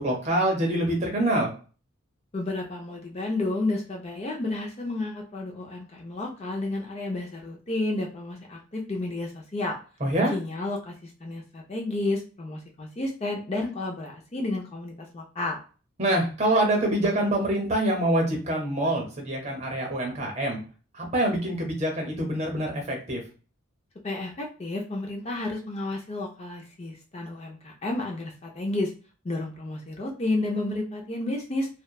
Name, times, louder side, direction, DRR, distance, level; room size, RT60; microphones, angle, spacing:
voice 1, 0.0-1.5 10.0-10.3 16.0-20.6 20.9-23.2, right 1 dB, 30° right, 1 dB, 0.8 m, -25 dB
voice 2, 2.3-9.8 10.2-15.6 24.0-28.9 29.2-31.7, left 2 dB, 30° left, 0 dB, 0.4 m, -31 dB
2.9 x 2.1 x 2.2 m, 0.37 s
head